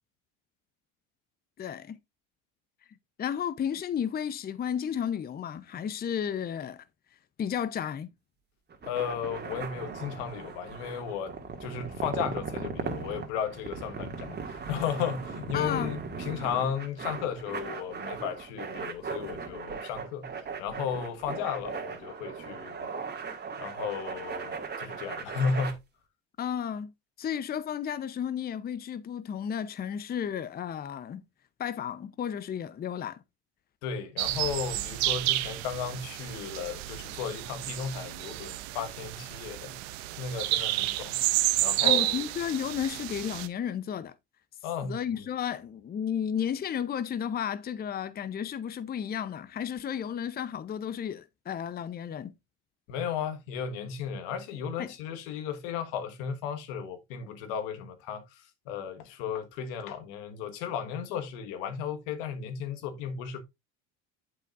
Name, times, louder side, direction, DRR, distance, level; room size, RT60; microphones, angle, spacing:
voice 1, 1.6-2.0 3.2-6.8 7.4-8.1 15.5-15.9 26.4-26.9 27.2-31.2 31.6-33.2 41.8-44.1 44.8-52.3 54.8-54.9, left 8 dB, 30° left, 0.7 m, -33 dB
sound 1, 8.7-25.7, right 5 dB, 35° right, 2.0 m, -38 dB
voice 2, 8.8-20.3 20.6-23.1 23.6-25.8 33.8-39.8 40.2-41.2 41.6-42.2 44.6-44.9 52.9-58.2 58.7-63.4, left 7 dB, 80° left, 1.5 m, -34 dB
sound 2, 34.2-43.5, right 17 dB, 85° right, 0.8 m, -30 dB
8.6 x 7.5 x 2.5 m
supercardioid pair, 90°, 31 cm